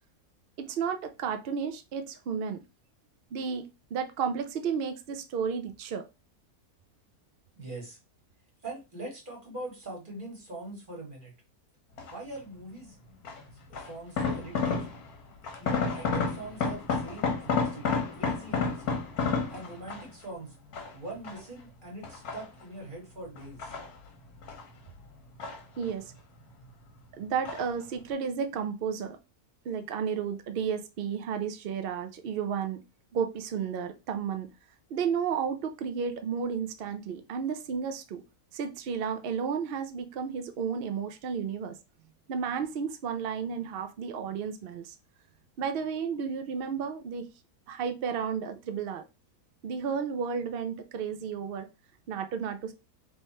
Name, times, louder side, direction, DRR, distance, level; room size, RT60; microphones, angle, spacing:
voice 1, 0.6-2.6 3.3-6.1 25.8-26.1 27.1-29.2 29.6-32.8 33.1-34.5 34.9-38.2 38.5-41.8 42.3-44.9 45.6-47.3 47.7-49.1 49.6-51.7 52.1-52.7, right 6 dB, 85° right, 0.5 m, -32 dB
voice 2, 7.6-8.0 8.6-11.3 12.1-13.0 13.7-14.9 15.6-19.0 19.5-20.5 20.9-23.7, right 2 dB, 35° right, 1.7 m, -42 dB
sound 1, 12.0-12.4 13.2-15.2 15.4-20.2 20.7-21.6 22.0-22.9 23.4-24.7 25.0-26.1 26.4-27.0 27.4-27.8 28.1-28.2, left 4 dB, 75° left, 1.5 m, -31 dB
3.4 x 3.2 x 4.1 m
omnidirectional pair, 1.6 m